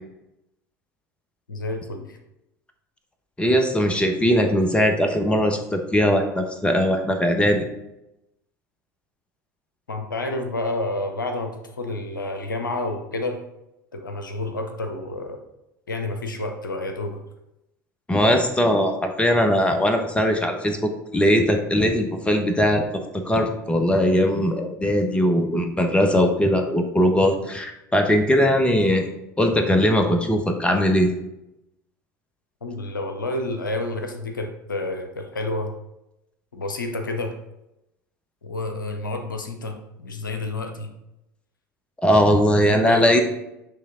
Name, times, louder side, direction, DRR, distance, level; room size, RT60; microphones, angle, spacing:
voice 1, 1.5-2.2 9.9-13.4 13.9-15.4 15.9-17.3 32.6-35.7 36.5-37.4 38.4-40.9 42.6-43.2, left 2 dB, 85° left, 5 dB, 0.7 m, -29 dB
voice 2, 3.4-7.7 18.1-22.8 23.1-29.0 29.4-31.1 42.0-43.2, equal, 10° left, 5 dB, 1.0 m, -20 dB
8.4 x 3.3 x 3.7 m, 0.88 s
figure-of-eight pair, 75°, 10 cm